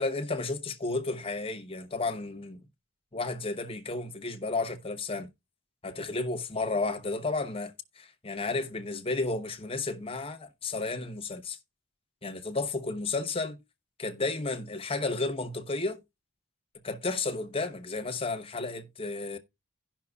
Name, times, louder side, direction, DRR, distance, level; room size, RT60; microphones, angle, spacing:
voice 1, 0.0-2.6 3.1-5.3 5.8-11.6 12.2-13.6 14.0-16.0 16.8-19.4, left 3 dB, 25° left, 0.9 m, -32 dB
16.5 x 5.7 x 2.3 m
head